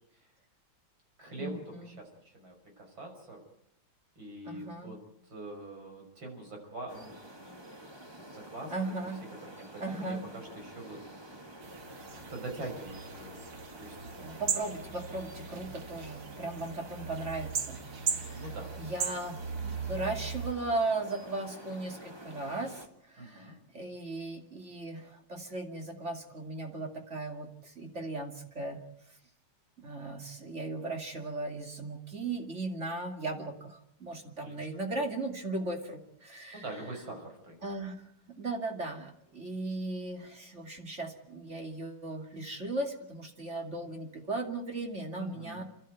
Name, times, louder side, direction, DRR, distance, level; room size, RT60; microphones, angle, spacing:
voice 1, 1.2-3.4 4.2-5.0 5.2-7.7 8.1-8.7 9.5-11.0 11.3-11.4 12.3-13.4 13.8-14.0 18.3-18.7 23.2-23.5 34.3-34.7 36.5-37.6 45.2-45.6, right 1 dB, 65° right, 2 dB, 6.6 m, -44 dB
voice 2, 4.4-5.0 8.7-9.2 9.8-10.2 14.2-17.8 18.0-18.4 18.8-28.8 29.8-36.6 37.6-38.0 38.4-45.6, right 2 dB, 35° right, 3 dB, 2.9 m, -37 dB
sound 1, 6.9-22.9, right 1 dB, 15° right, 1.7 m, -49 dB
sound 2, 11.6-20.5, right 6 dB, 85° right, 2.5 m, -38 dB
29.5 x 12.5 x 9.3 m, 0.76 s
omnidirectional pair, 2.3 m